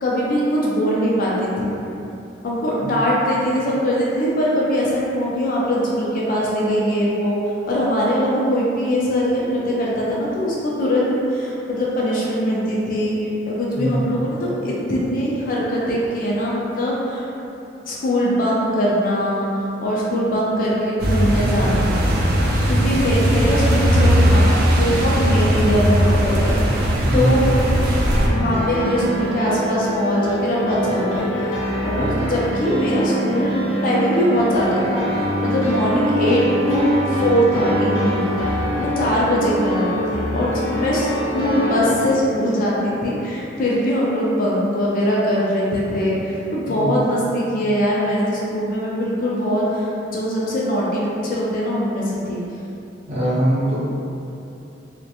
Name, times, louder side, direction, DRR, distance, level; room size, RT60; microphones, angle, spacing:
voice 1, 0.0-1.7 2.4-7.4 7.7-13.2 13.5-17.3 17.8-19.5 19.8-22.0 22.7-27.4 28.3-33.5 33.8-41.1 41.3-49.9 50.1-52.4, equal, 45° left, -5 dB, 0.4 m, -21 dB
voice 2, 13.8-14.1 27.1-27.5 46.7-47.0 53.1-53.8, right 1 dB, 35° right, -11 dB, 0.7 m, -21 dB
sound 1, 21.0-28.3, equal, 50° right, 0.3 m, -18 dB
sound 2, 28.1-41.9, equal, 85° left, 0.6 m, -24 dB
2.4 x 2.1 x 2.7 m, 2.8 s
head